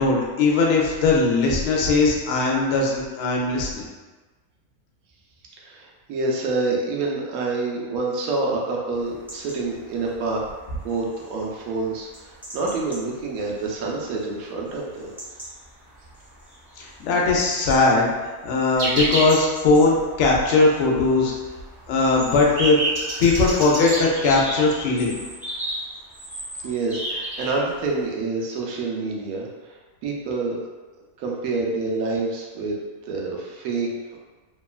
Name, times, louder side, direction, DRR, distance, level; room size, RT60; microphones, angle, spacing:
voice 1, 0.0-3.9 16.8-18.1 18.4-21.3 21.9-22.8 23.2-25.2, left 3 dB, 65° left, -2 dB, 0.8 m, -19 dB
voice 2, 5.6-10.4 10.8-15.1 26.6-29.7 30.0-30.6 31.2-32.8 33.1-33.9, right 3 dB, 75° right, -2 dB, 1.0 m, -27 dB
sound 1, 8.9-28.1, equal, 5° right, 0.3 m, -40 dB
sound 2, 18.8-19.5 19.8-19.9 20.2-20.6 20.9-21.0 21.3-24.1 24.8-24.9 25.1-25.3, right 2 dB, 60° right, 0.6 m, -27 dB
2.9 x 2.2 x 2.3 m, 1.3 s
omnidirectional pair, 1.6 m